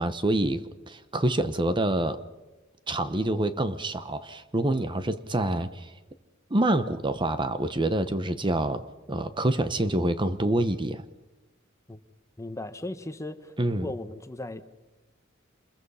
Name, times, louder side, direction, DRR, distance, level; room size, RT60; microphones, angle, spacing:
voice 1, 0.0-2.2 2.9-5.9 6.5-8.8 9.1-11.0 13.6-13.9, right 1 dB, 25° right, 11 dB, 1.0 m, -26 dB
voice 2, 12.4-14.6, left 1 dB, 15° left, 10 dB, 1.1 m, -37 dB
28.0 x 22.0 x 5.6 m, 1.1 s
head